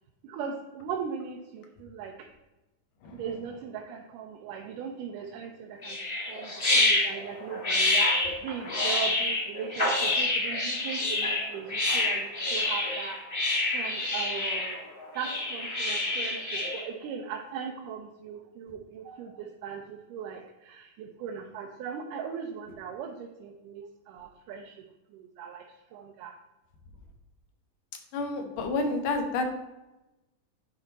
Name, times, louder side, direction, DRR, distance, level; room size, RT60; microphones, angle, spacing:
voice 1, 0.2-2.3 3.1-6.0 6.3-14.8 15.2-24.8 25.1-26.4, right 7 dB, 90° right, 1 dB, 2.3 m, -39 dB
sound 1, 5.8-16.8, left 2 dB, 25° left, 1.2 m, -27 dB
voice 2, 28.1-29.4, left 3 dB, 85° left, 5 dB, 2.6 m, -29 dB
10.5 x 4.5 x 4.1 m, 0.99 s
omnidirectional pair, 3.6 m